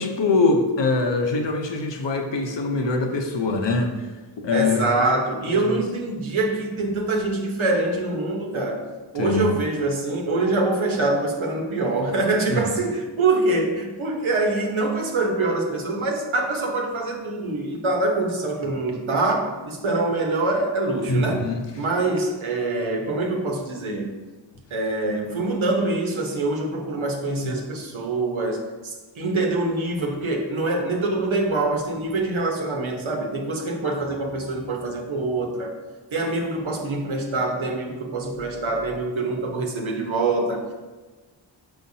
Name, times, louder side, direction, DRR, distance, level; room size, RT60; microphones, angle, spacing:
voice 1, 0.0-3.9 4.4-4.9 5.7-5.8 9.2-9.5 12.5-12.6 21.1-21.6 27.4-27.5, left 3 dB, 60° left, 4 dB, 0.9 m, -23 dB
voice 2, 4.5-8.9 9.1-21.5 21.8-24.1 24.7-35.7 36.1-40.7, right 2 dB, 70° right, 0 dB, 1.2 m, -24 dB
6.5 x 5.7 x 2.8 m, 1.3 s
wide cardioid pair, 80°, 49 cm